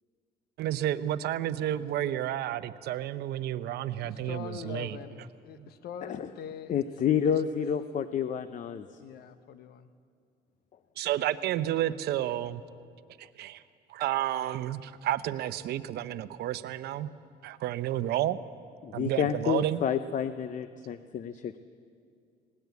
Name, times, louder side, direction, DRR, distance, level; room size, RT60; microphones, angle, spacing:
voice 1, 0.6-5.0 5.6-5.7 11.0-12.6 13.2-13.6 13.9-17.1 17.4-18.4 18.9-19.8, right 12 dB, 75° right, 12 dB, 0.8 m, -31 dB
voice 2, 4.0-6.9 7.3-7.6 9.0-9.9, left 8 dB, 65° left, 11 dB, 1.2 m, -43 dB
voice 3, 6.7-8.9 18.8-21.6, left 8 dB, 50° left, 11 dB, 0.7 m, -29 dB
20.0 x 18.0 x 8.3 m, 2.3 s
cardioid pair, 110°, 17 cm